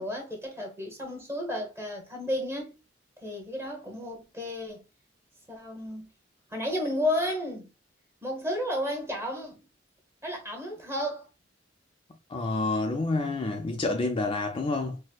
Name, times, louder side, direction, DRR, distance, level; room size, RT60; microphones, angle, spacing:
voice 1, 0.0-2.7 3.2-4.8 5.5-6.1 6.5-7.7 8.2-9.6 10.2-11.3, left 1 dB, 15° right, 1.0 m, -32 dB
voice 2, 12.3-15.0, left 2 dB, 30° left, 0.4 m, -28 dB
4.2 x 2.1 x 2.3 m
head